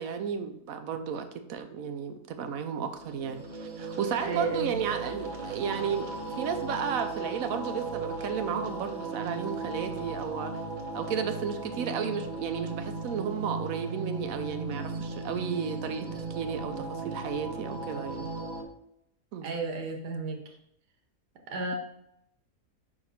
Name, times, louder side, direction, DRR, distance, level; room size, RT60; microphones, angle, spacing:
voice 1, 0.0-10.5 10.9-18.3 19.3-19.6, right 7 dB, 70° right, 8 dB, 0.9 m, -33 dB
sound 1, 2.9-18.6, right 3 dB, 50° right, 0.6 m, -36 dB
voice 2, 4.2-4.8 19.4-20.4 21.5-21.7, right 3 dB, 85° right, 3 dB, 1.7 m, -33 dB
5.3 x 4.9 x 4.2 m, 0.77 s
omnidirectional pair, 1.7 m